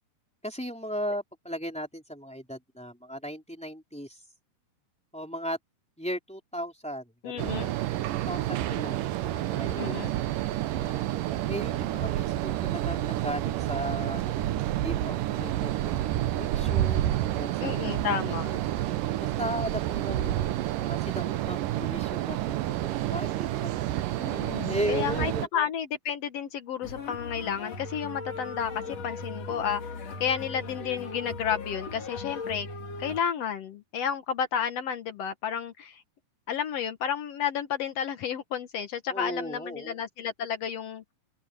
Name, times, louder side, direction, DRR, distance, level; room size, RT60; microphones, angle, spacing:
voice 1, 0.4-4.2 5.1-5.6 6.0-7.6 8.1-10.1 10.5-11.1 11.4-14.2 14.7-18.8 19.2-24.0 24.6-25.7 39.1-40.0, equal, ahead, 2.9 m, -37 dB
voice 2, 7.2-7.7 9.8-10.1 17.6-18.5 24.2-29.8 30.2-32.7 33.0-36.0 36.5-41.1, left 8 dB, 75° left, 1.4 m, -31 dB
sound 1, 7.4-25.5, right 14 dB, 70° right, 2.2 m, -29 dB
sound 2, 26.8-33.2, left 3 dB, 45° left, 3.5 m, -38 dB
omnidirectional pair, 4.5 m